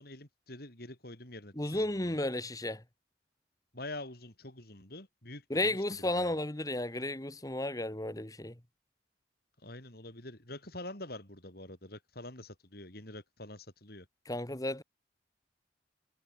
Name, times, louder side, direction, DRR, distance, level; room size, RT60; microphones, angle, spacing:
voice 1, 0.0-2.2 3.7-6.4 9.6-14.1, left 2 dB, 55° left, 6.5 m, -46 dB
voice 2, 1.5-2.8 5.5-8.6 14.2-14.8, left 1 dB, 20° left, 1.7 m, -33 dB
head